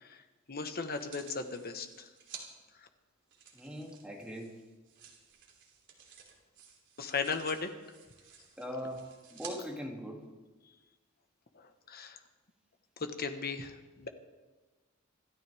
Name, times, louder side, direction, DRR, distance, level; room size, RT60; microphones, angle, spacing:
voice 1, 0.1-2.1 2.8-2.9 7.0-7.7 11.5-12.2 13.0-14.1, left 4 dB, 45° left, 7 dB, 1.2 m, -37 dB
sound 1, 0.9-2.4 3.3-9.5 10.2-10.3, right 7 dB, 60° right, 3.1 m, -53 dB
voice 2, 3.5-4.6 8.6-9.0 9.3-10.3, equal, 5° right, 0 dB, 2.1 m, -41 dB
26.5 x 12.5 x 3.5 m, 1.2 s
head